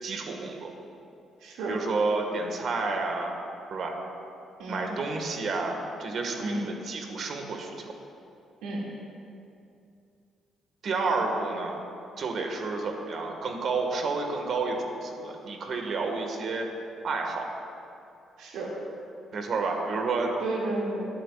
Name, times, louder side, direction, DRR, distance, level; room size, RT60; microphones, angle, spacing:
voice 1, 0.0-0.7 1.7-3.3 3.7-4.0 4.7-7.7 10.8-11.8 12.2-16.7 17.0-17.5 19.3-20.3, right 3 dB, 60° right, 2 dB, 1.7 m, -30 dB
voice 2, 1.4-1.8 4.6-4.9 6.4-6.6 8.6-8.8 18.4-18.7 20.4-21.1, right 2 dB, 90° right, -3 dB, 2.4 m, -32 dB
19.5 x 12.5 x 2.5 m, 2.6 s
cardioid pair, 100°, 0 cm